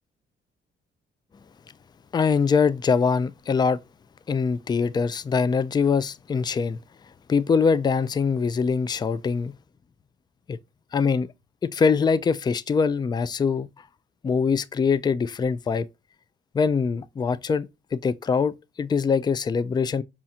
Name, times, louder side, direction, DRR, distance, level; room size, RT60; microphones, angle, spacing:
voice 1, 2.1-3.8 4.3-6.8 7.3-9.6 10.5-10.6 10.9-11.3 11.6-13.7 14.2-15.9 16.5-20.0, left 5 dB, 20° left, 0.3 m, -23 dB
5.6 x 2.4 x 2.7 m
cardioid pair, 90°, 20 cm